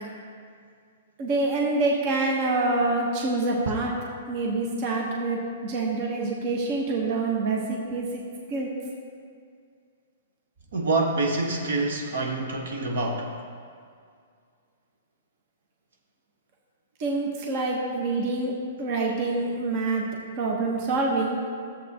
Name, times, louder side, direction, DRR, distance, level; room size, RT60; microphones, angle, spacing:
voice 1, 1.2-3.9 4.3-8.1 8.5-8.7 17.0-18.5 18.8-20.0 20.4-21.4, right 3 dB, 35° right, -1 dB, 1.0 m, -26 dB
voice 2, 10.7-13.3, right 2 dB, 70° right, 1 dB, 1.3 m, -26 dB
13.5 x 7.5 x 2.8 m, 2.2 s
hypercardioid pair, 170°, 0 cm